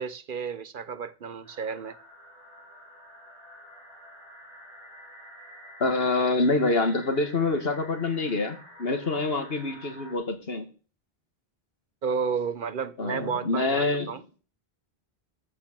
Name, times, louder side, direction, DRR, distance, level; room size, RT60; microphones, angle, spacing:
voice 1, 0.0-2.0 12.0-14.2, right 6 dB, 60° right, 0.9 m, -32 dB
sound 1, 1.4-10.1, equal, 35° left, 7.5 m, -49 dB
voice 2, 5.8-10.7 13.0-14.1, left 3 dB, 75° left, 2.1 m, -26 dB
13.5 x 6.0 x 6.7 m
omnidirectional pair, 1.0 m